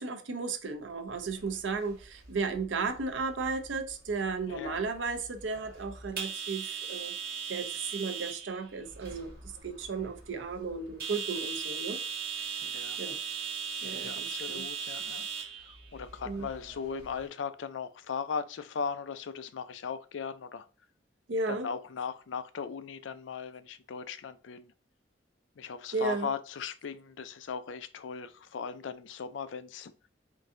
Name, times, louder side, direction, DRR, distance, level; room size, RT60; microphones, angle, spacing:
voice 1, 0.0-7.1 7.5-9.3 9.6-12.0 13.0-13.2 13.8-14.7 16.2-16.5 21.3-21.7 25.9-26.3, right 4 dB, 85° right, 0.6 m, -34 dB
sound 1, 1.1-17.3, right 6 dB, 55° right, 1.3 m, -40 dB
voice 2, 4.5-4.8 12.6-13.0 14.0-20.7 21.5-24.7 25.6-29.9, left 6 dB, 90° left, 0.4 m, -38 dB
3.8 x 2.6 x 3.7 m
head